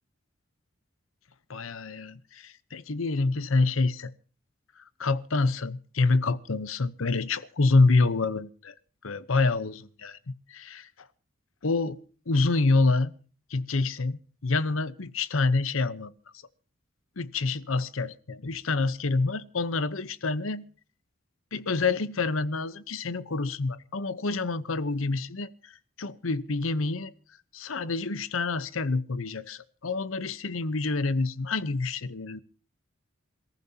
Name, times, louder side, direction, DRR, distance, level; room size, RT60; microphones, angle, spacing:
voice 1, 1.5-4.1 4.8-8.7 9.0-10.2 10.5-11.1 11.6-13.1 13.5-16.1 17.2-20.6 21.5-27.1 27.5-32.4, left 3 dB, 85° left, 0.9 m, -27 dB
27.5 x 15.0 x 2.8 m
head